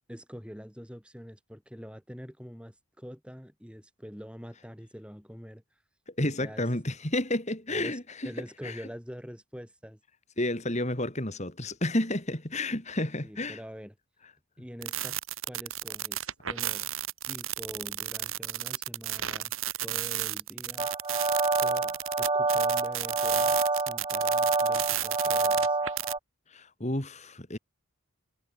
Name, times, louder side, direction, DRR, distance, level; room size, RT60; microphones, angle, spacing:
voice 1, 0.1-5.8 6.2-6.7 7.7-10.0 13.2-13.9 14.6-15.2 15.4-16.9 17.3-19.5 19.8-20.9 21.6-25.8, equal, 5° right, 4.1 m, -45 dB
voice 2, 6.2-8.3 8.6-8.7 10.4-13.6 26.5-27.6, left 1 dB, 30° left, 3.1 m, -31 dB
sound 1, 14.8-26.1, right 13 dB, 65° right, 2.3 m, -33 dB
sound 2, 20.8-26.2, right 3 dB, 20° right, 1.1 m, -27 dB
head